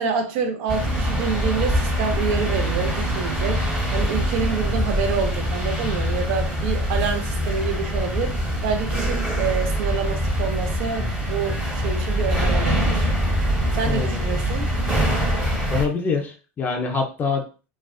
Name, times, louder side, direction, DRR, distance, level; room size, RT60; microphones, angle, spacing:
voice 1, 0.0-3.6 3.9-13.1 13.7-14.7, right 5 dB, 60° right, 0.6 m, -27 dB
sound 1, 0.7-15.9, equal, 10° right, 1.0 m, -24 dB
voice 2, 13.9-14.3 15.7-17.5, left 5 dB, 25° left, 0.5 m, -25 dB
2.4 x 2.2 x 2.3 m
supercardioid pair, 115°, 8 cm